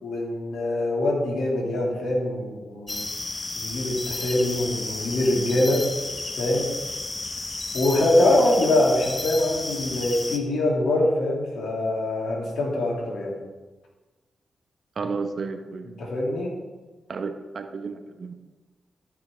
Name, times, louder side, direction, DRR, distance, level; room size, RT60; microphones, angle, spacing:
voice 1, 0.0-3.1 3.5-5.8 6.4-6.9 7.7-13.4 16.0-16.5, left 1 dB, 80° left, -2 dB, 2.4 m, -24 dB
sound 1, 2.9-10.4, left 2 dB, 35° left, 1.1 m, -32 dB
voice 2, 15.0-16.0 17.1-18.3, right 4 dB, 60° right, 6 dB, 1.0 m, -32 dB
13.0 x 6.0 x 3.4 m, 1.2 s
supercardioid pair, 45°, 0 cm